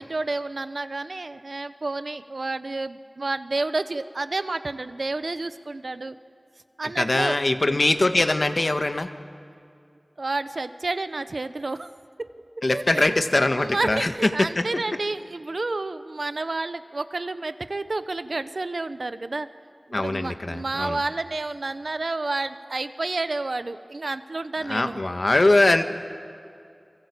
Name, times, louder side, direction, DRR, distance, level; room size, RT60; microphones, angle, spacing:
voice 1, 0.0-6.2 6.8-7.4 10.2-11.9 12.2-13.1 13.6-19.5 20.0-25.0, right 2 dB, 85° right, 11 dB, 0.9 m, -30 dB
voice 2, 7.0-9.1 12.6-14.1 14.4-14.6 19.9-21.0 24.7-25.9, left 2 dB, 60° left, 7 dB, 1.5 m, -22 dB
28.5 x 23.5 x 8.4 m, 2.3 s
wide cardioid pair, 55°, 0 cm